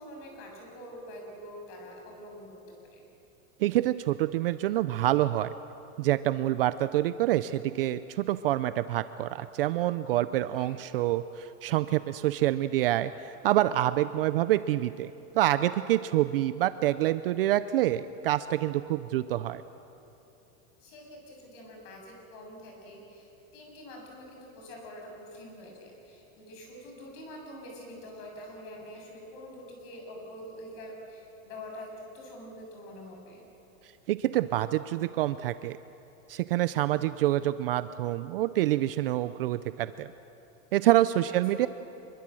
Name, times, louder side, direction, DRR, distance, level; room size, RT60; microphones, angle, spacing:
voice 1, 0.0-2.6 2.9-3.0 10.6-10.8 20.8-33.4 41.3-41.7, equal, 45° left, 1 dB, 7.0 m, -45 dB
voice 2, 3.6-5.5 6.0-19.6 34.1-35.8 36.3-40.1 40.7-41.7, right 14 dB, 45° right, 13 dB, 0.5 m, -27 dB
25.0 x 22.5 x 7.6 m, 3.0 s
supercardioid pair, 170°, 41 cm